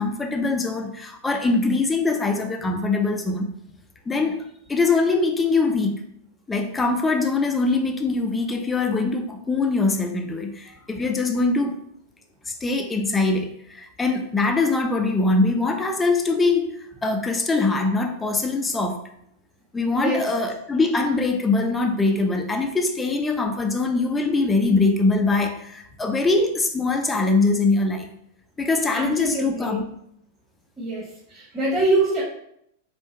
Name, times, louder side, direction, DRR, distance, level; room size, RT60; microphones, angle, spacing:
voice 1, 0.0-3.5 4.1-4.4 4.7-6.0 6.5-11.7 12.5-16.7 17.0-19.0 19.7-28.1 28.6-29.8, left 3 dB, 15° left, 4 dB, 0.6 m, -22 dB
voice 2, 28.9-29.8 30.8-32.2, right 2 dB, 10° right, -10 dB, 1.5 m, -24 dB
3.6 x 2.6 x 4.3 m, 0.73 s
figure-of-eight pair, 95°, 0 cm